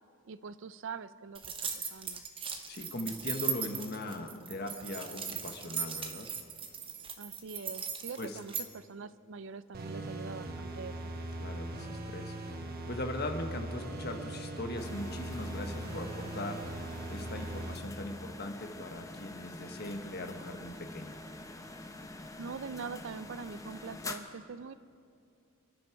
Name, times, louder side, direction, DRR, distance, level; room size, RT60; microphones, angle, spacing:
voice 1, 0.2-2.2 7.2-11.1 22.4-24.7, right 5 dB, 60° right, 16 dB, 0.4 m, -43 dB
sound 1, 1.3-8.7, right 7 dB, 25° right, 1.0 m, -38 dB
voice 2, 2.7-6.3 8.2-8.4 11.4-12.4 12.9-16.8 17.1-21.2, left 1 dB, 45° left, 5 dB, 1.3 m, -40 dB
sound 2, 9.7-17.8, right 1 dB, 45° right, 1.2 m, -40 dB
sound 3, 14.8-24.2, left 2 dB, 15° left, 0.7 m, -46 dB
28.0 x 10.5 x 4.7 m, 2.5 s
head